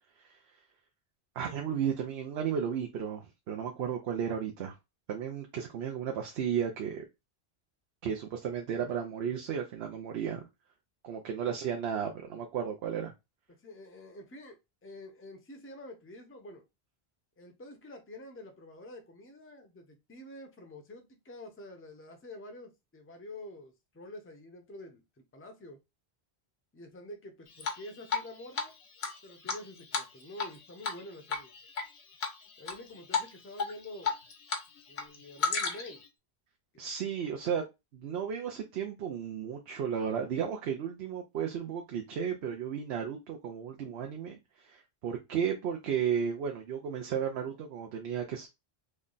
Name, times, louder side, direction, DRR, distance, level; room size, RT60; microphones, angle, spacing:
voice 1, 1.4-4.7 5.1-7.0 8.0-10.4 11.0-13.1 36.8-37.6 37.9-44.4 44.6-48.5, right 8 dB, 80° right, 0.9 m, -34 dB
voice 2, 13.6-16.7 17.4-25.0 25.3-25.8 26.7-28.8 29.2-31.5 32.6-34.1 34.9-36.0 36.7-36.9, left 1 dB, 15° left, 0.5 m, -48 dB
Drip, 27.6-28.3 28.6-28.7 29.0-30.6 30.8-31.0 31.3-31.8 32.2-32.8 33.1-33.3 33.6-34.6 34.9-36.0, left 5 dB, 85° left, 1.0 m, -32 dB
3.2 x 2.2 x 3.8 m
omnidirectional pair, 1.1 m